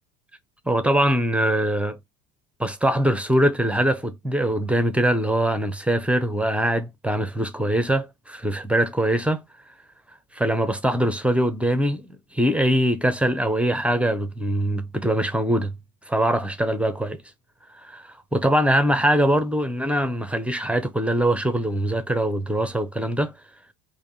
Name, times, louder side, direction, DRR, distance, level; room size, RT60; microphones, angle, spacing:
voice 1, 0.7-2.0 2.6-9.4 10.3-15.7 16.1-17.2 17.8-23.3, right 1 dB, 5° right, 0.4 m, -22 dB
3.5 x 2.6 x 4.1 m
figure-of-eight pair, 70°, 50 cm